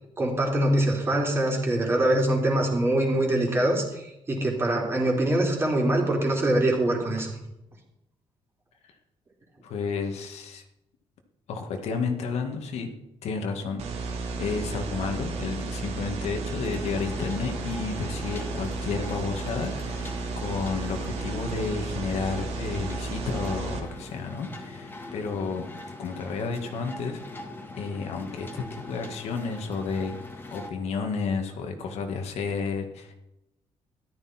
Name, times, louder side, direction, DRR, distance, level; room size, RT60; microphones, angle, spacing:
voice 1, 0.2-7.3, right 1 dB, 20° right, 0 dB, 3.5 m, -24 dB
voice 2, 9.6-10.6 11.5-25.7 26.0-27.2 27.8-30.1 30.5-33.1, left 4 dB, 75° left, 4 dB, 2.0 m, -32 dB
sound 1, 13.8-23.8, right 4 dB, 75° right, 2.6 m, -33 dB
sound 2, 16.6-30.7, left 2 dB, 20° left, 1.8 m, -42 dB
14.0 x 12.0 x 4.5 m, 0.88 s
cardioid pair, 150°, 11 cm